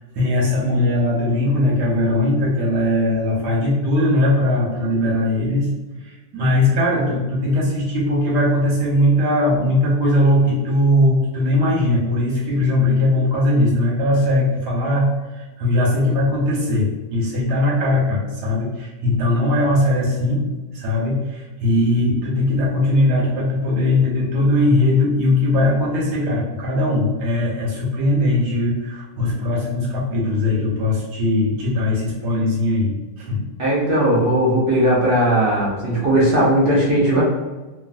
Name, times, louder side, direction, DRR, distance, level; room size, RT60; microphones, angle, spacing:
voice 1, 0.1-5.7 6.3-15.1 15.3-20.4 20.7-33.4, left 1 dB, 80° right, -4 dB, 1.5 m, -19 dB
voice 2, 33.6-37.2, right 1 dB, 50° right, -6 dB, 0.7 m, -17 dB
3.1 x 2.4 x 2.5 m, 1.2 s
omnidirectional pair, 1.7 m